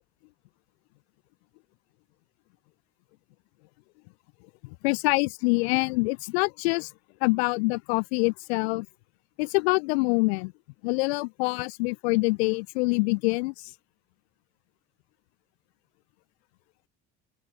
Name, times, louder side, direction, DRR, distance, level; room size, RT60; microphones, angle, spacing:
voice 1, 4.8-6.9 7.2-8.9 9.4-10.5 10.8-13.7, left 27 dB, 90° left, 0.7 m, -25 dB
open air
supercardioid pair, 70°, 31 cm